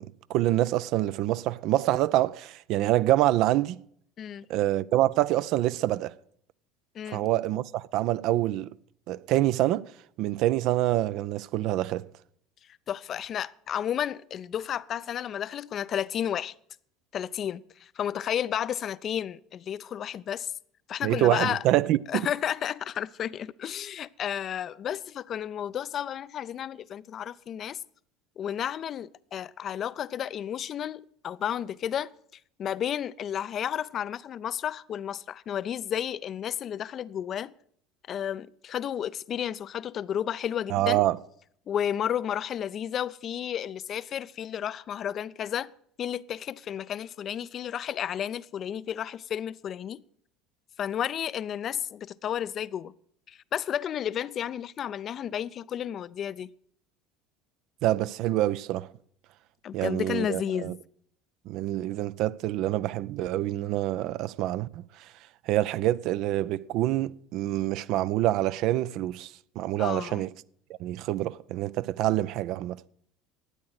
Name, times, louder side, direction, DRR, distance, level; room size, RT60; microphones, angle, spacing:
voice 1, 0.0-3.8 4.5-6.1 7.1-8.7 9.1-9.8 10.2-12.1 21.0-22.3 40.7-41.2 57.8-58.9 59.7-60.7 61.5-65.1 65.5-70.3 70.8-72.8, right 14 dB, 50° right, 0.4 m, -26 dB
voice 2, 4.2-4.5 6.9-7.3 12.9-16.5 17.1-20.5 20.9-21.6 22.1-27.8 28.4-32.1 32.6-37.5 38.1-41.0 41.7-45.7 46.0-50.0 50.8-52.9 53.3-56.5 59.6-60.8 69.8-70.2, left 9 dB, 40° left, 0.4 m, -32 dB
12.5 x 9.5 x 6.4 m
figure-of-eight pair, 65°, 0 cm